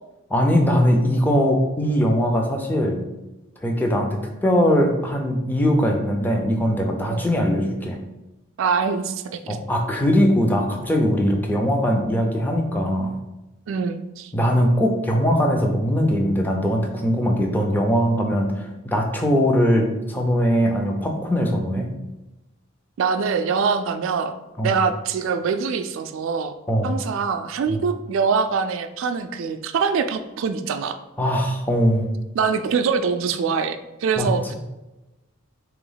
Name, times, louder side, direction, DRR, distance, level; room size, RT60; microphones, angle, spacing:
voice 1, 0.3-3.0 3.6-8.0 9.5-13.1 14.3-21.9 24.6-24.7 26.7-26.9 27.7-27.8 31.2-32.1 34.2-34.3, equal, 10° left, 2 dB, 0.5 m, -21 dB
voice 2, 8.6-9.4 13.7-14.3 23.0-24.3 24.6-26.5 26.8-31.0 32.4-34.5, right 5 dB, 65° right, 8 dB, 0.3 m, -24 dB
3.4 x 2.9 x 3.9 m, 1.0 s
head